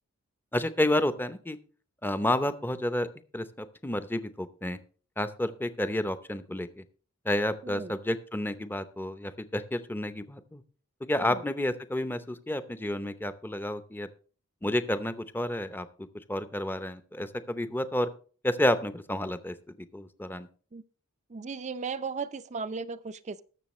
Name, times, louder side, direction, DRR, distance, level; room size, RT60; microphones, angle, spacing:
voice 1, 0.5-1.6 2.0-3.1 3.3-4.8 5.2-6.8 7.2-10.6 11.0-14.1 14.6-15.9 16.3-18.1 18.4-19.5 19.9-20.5, left 1 dB, 10° left, 0.7 m, -30 dB
voice 2, 21.3-23.4, right 5 dB, 30° right, 0.5 m, -36 dB
20.0 x 6.9 x 3.1 m
head